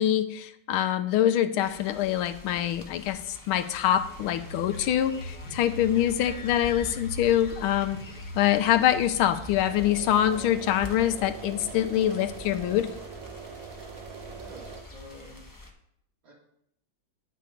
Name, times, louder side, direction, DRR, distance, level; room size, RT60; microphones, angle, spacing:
voice 1, 0.0-8.0 8.4-12.9, left 11 dB, 85° left, 10 dB, 1.5 m, -25 dB
sound 1, 1.6-15.7, left 2 dB, 25° left, 0.4 m, -46 dB
sound 2, 3.4-10.1, left 1 dB, 60° left, 1.6 m, -41 dB
sound 3, 9.6-14.8, right 6 dB, 55° right, 1.0 m, -43 dB
voice 2, 14.3-15.5 16.2-16.3, equal, 70° right, -5 dB, 3.1 m, -48 dB
9.1 x 6.7 x 5.1 m, 0.74 s
omnidirectional pair, 2.3 m